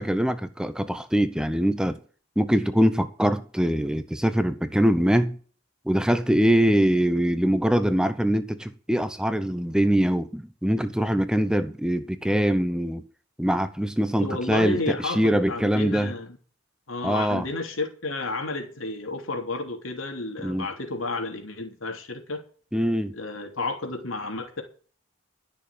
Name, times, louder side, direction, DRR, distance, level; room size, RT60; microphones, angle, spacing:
voice 1, 0.0-2.0 2.4-5.4 5.9-13.0 13.4-16.1 17.0-17.5 20.4-20.7 22.7-23.2, equal, 5° right, 0.8 m, -23 dB
voice 2, 14.2-16.4 16.9-22.4 23.1-24.6, left 2 dB, 90° left, 3.2 m, -31 dB
13.0 x 6.7 x 8.4 m
head